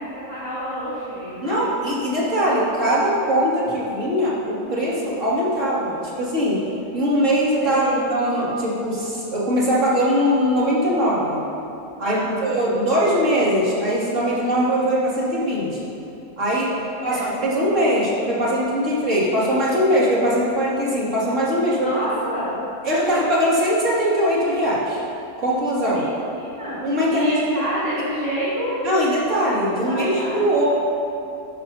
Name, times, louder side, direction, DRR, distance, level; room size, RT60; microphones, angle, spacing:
voice 1, 0.0-1.6 4.6-4.8 7.6-8.0 12.0-12.5 17.0-17.4 21.8-22.5 25.8-26.8 27.1-28.8 29.4-29.5 29.9-30.4, equal, 20° right, -12 dB, 2.4 m, -28 dB
voice 2, 1.4-6.6 6.9-7.8 8.1-11.4 12.0-15.8 16.4-16.7 17.0-21.9 22.8-25.0 25.4-26.0 26.8-27.6 28.8-30.7, equal, 50° right, -8 dB, 2.9 m, -21 dB
13.0 x 11.5 x 2.8 m, 2.8 s
omnidirectional pair, 1.6 m